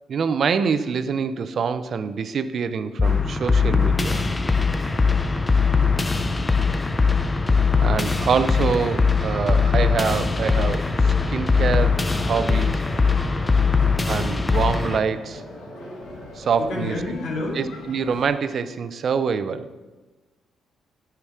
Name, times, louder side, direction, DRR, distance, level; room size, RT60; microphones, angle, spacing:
voice 1, 0.1-4.3 7.8-12.8 14.0-15.4 16.4-17.0 17.6-19.7, right 6 dB, 55° right, 12 dB, 0.5 m, -25 dB
sound 1, 3.0-15.0, left 4 dB, 20° left, 0.6 m, -21 dB
sound 2, 4.2-16.7, equal, 5° left, 1.5 m, -42 dB
voice 2, 5.2-6.1 16.6-17.6, left 2 dB, 70° left, -2 dB, 2.4 m, -31 dB
sound 3, 7.4-18.3, left 3 dB, 90° left, 1.4 m, -45 dB
8.7 x 5.8 x 4.7 m, 1.2 s
cardioid pair, 90°, 0 cm